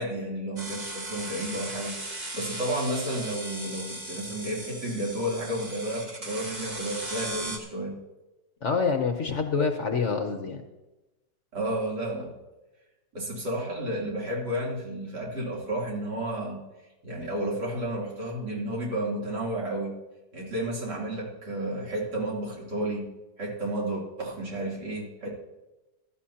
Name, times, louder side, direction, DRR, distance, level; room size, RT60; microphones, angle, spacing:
voice 1, 0.0-2.0 2.3-8.0 11.5-12.3 13.1-16.7 17.0-20.0 20.3-23.1 23.4-25.3, right 1 dB, 70° right, -4 dB, 3.7 m, -32 dB
sound 1, 0.6-7.6, right 1 dB, 25° right, 1.3 m, -37 dB
voice 2, 8.6-10.6, left 5 dB, 50° left, 5 dB, 1.0 m, -26 dB
16.0 x 12.5 x 2.9 m, 1.0 s
omnidirectional pair, 1.9 m